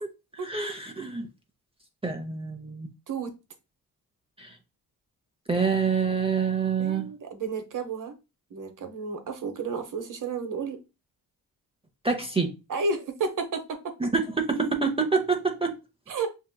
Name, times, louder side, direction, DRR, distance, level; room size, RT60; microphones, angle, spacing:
voice 1, 0.4-1.3 2.0-2.9 4.4-4.5 5.5-7.1 12.0-12.5 14.0-15.7, right 5 dB, 15° right, 0.7 m, -26 dB
voice 2, 6.8-8.1 8.5-10.8 12.7-13.9 16.1-16.3, right 4 dB, 55° right, 1.0 m, -32 dB
5.8 x 2.8 x 2.2 m
cardioid pair, 85°, 38 cm